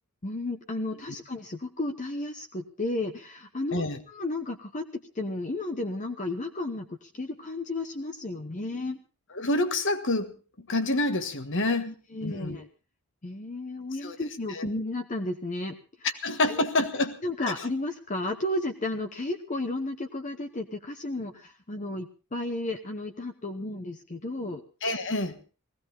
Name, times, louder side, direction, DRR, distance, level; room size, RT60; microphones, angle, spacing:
voice 1, 0.2-9.0 11.8-12.7 13.2-16.1 16.5-16.9 17.2-24.6, left 2 dB, 35° left, 5 dB, 1.0 m, -33 dB
voice 2, 9.3-10.3 10.6-11.9 12.2-12.6 14.0-14.2 14.5-14.7 16.2-17.1 17.4-17.5 24.8-25.4, left 2 dB, 60° left, 9 dB, 1.6 m, -27 dB
19.5 x 16.5 x 3.9 m, 0.33 s
head